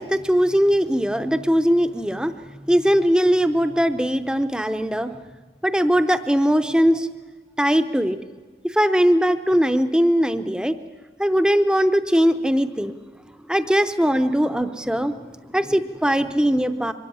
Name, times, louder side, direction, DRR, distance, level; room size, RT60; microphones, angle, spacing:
voice 1, 0.0-5.2 5.6-7.1 7.6-8.2 8.6-10.8 11.2-12.9 13.5-16.9, equal, 5° right, 10 dB, 0.7 m, -20 dB
24.0 x 13.5 x 9.9 m, 1.3 s
head